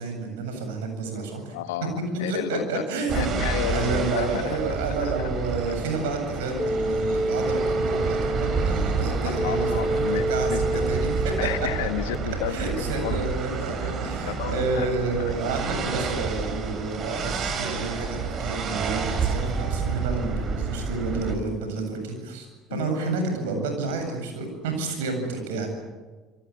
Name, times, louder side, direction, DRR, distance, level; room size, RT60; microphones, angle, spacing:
voice 1, 0.0-1.5 2.3-3.4 3.7-11.3 12.5-25.7, right 3 dB, 75° right, 5 dB, 8.0 m, -30 dB
voice 2, 1.5-2.8 3.1-4.6 5.0-5.1 9.2-10.9 11.4-13.3 13.7-14.0 14.2-14.9 15.2-15.4 22.7-23.0 24.8-25.3, left 12 dB, 75° left, 10 dB, 1.7 m, -32 dB
sound 1, 3.1-21.4, right 5 dB, 45° right, 4.9 m, -29 dB
sound 2, 6.6-12.2, right 1 dB, 10° left, 1.8 m, -28 dB
27.5 x 23.0 x 8.7 m, 1.3 s
hypercardioid pair, 65°, 0 cm